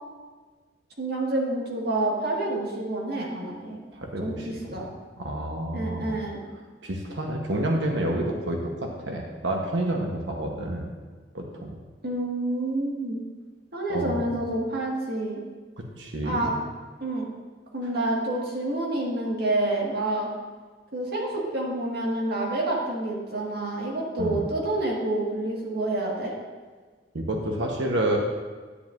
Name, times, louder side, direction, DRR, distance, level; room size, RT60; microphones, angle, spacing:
voice 1, 1.0-3.8 4.2-4.9 5.7-6.4 12.0-13.2 13.7-15.4 16.2-16.5 17.0-17.3 17.7-20.3 20.9-26.3, right 1 dB, 60° right, -3 dB, 1.9 m, -28 dB
voice 2, 3.9-4.8 5.2-6.1 6.8-10.9 11.3-11.8 13.9-14.2 16.0-16.5 24.2-24.4 27.1-28.2, right 1 dB, 90° right, 1 dB, 1.1 m, -29 dB
10.0 x 9.5 x 2.6 m, 1.4 s
head